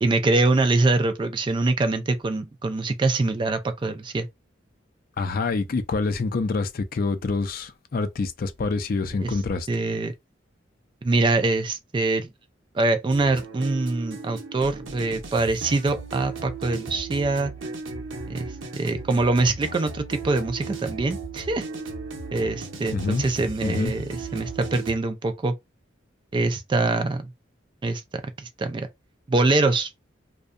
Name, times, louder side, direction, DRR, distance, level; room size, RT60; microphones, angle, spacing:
voice 1, 0.0-4.3 9.2-9.3 9.7-10.1 11.0-12.3 12.7-17.5 18.3-21.7 22.3-25.5 26.3-27.3 27.8-28.0 28.4-28.9 29.3-29.9, right 2 dB, 25° right, 0.3 m, -24 dB
voice 2, 5.2-9.7 22.9-23.2 23.6-23.9, left 3 dB, 50° left, 0.4 m, -26 dB
sound 1, 13.1-25.0, right 3 dB, 90° right, 0.7 m, -36 dB
2.6 x 2.1 x 2.4 m
head